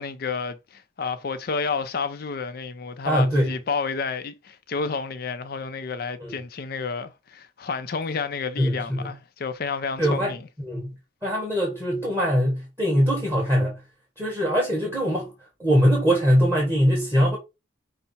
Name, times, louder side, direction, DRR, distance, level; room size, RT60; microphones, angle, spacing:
voice 1, 0.0-10.5, left 5 dB, 50° left, 0.4 m, -30 dB
voice 2, 3.0-3.5 6.2-6.3 8.6-9.1 10.0-10.9 11.2-13.8 14.2-15.3 15.6-17.4, equal, 15° right, 1.3 m, -22 dB
5.6 x 2.1 x 4.1 m
head